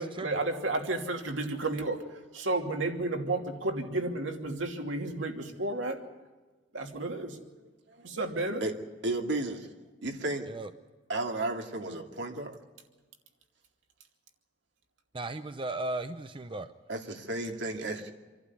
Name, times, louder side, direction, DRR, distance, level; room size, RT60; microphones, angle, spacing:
voice 1, 0.0-2.0 2.3-6.0 6.7-7.4 8.0-8.6, right 2 dB, 85° right, 3 dB, 2.8 m, -32 dB
voice 2, 9.0-9.7 10.0-10.5 11.1-12.6 16.9-18.1, right 2 dB, 65° right, 3 dB, 2.5 m, -33 dB
voice 3, 15.1-16.7, right 2 dB, 25° right, 9 dB, 0.7 m, -36 dB
27.0 x 12.0 x 9.7 m, 1.3 s
head